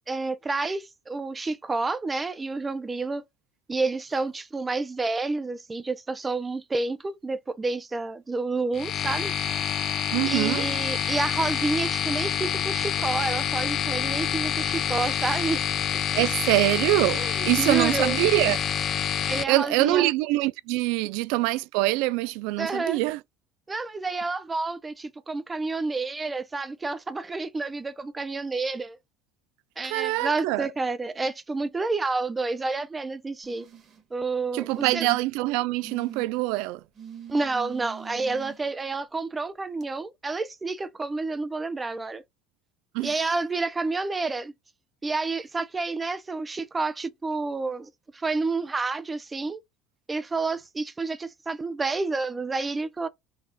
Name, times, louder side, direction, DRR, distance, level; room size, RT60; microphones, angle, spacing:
voice 1, 0.1-3.2 3.7-9.7 10.3-15.6 17.2-18.2 19.2-20.1 22.6-23.0 23.7-29.0 29.8-33.7 34.1-35.1 37.3-42.2 43.0-44.5 45.0-49.6 50.1-53.1, right 3 dB, 15° right, 0.5 m, -29 dB
sound 1, 8.7-19.4, left 9 dB, 40° left, 0.4 m, -27 dB
voice 2, 10.1-10.7 16.1-18.6 19.5-23.2 29.8-30.7 34.5-36.8 42.9-43.1, right 19 dB, 75° right, 0.3 m, -24 dB
sound 2, 33.4-34.0 34.7-35.4 35.8-36.3 37.0-38.6 39.8-39.9, right 8 dB, 35° right, 1.4 m, -42 dB
4.2 x 2.3 x 3.8 m
cardioid pair, 135°, 0 cm